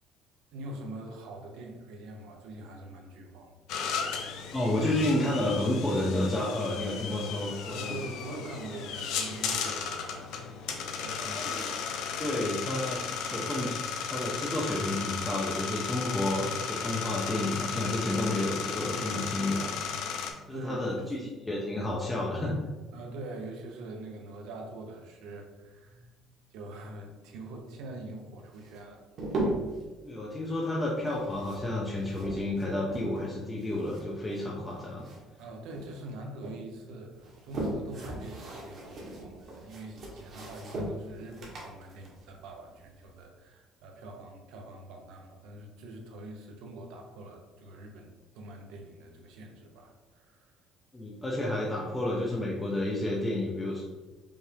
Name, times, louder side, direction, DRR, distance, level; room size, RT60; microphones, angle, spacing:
voice 1, 0.5-3.5 3.8-3.9 7.7-10.5 10.8-11.7 20.5-21.3 22.9-29.0 35.4-50.5, right 2 dB, 75° right, 2 dB, 0.7 m, -44 dB
sound 1, 3.7-20.3, left 6 dB, 65° left, 0.5 m, -35 dB
voice 2, 4.5-7.9 11.2-11.8 12.2-13.0 13.3-13.8 14.1-19.8 20.5-21.2 21.4-22.6 30.0-35.0 50.9-53.8, left 1 dB, 10° left, -4 dB, 0.4 m, -31 dB
sound 2, 28.5-29.8 31.0-33.3 33.6-35.4 35.7-36.6 37.1-43.2, right 1 dB, 40° right, 0.9 m, -38 dB
5.2 x 2.4 x 3.3 m, 1.2 s
cardioid pair, 180°, 0 cm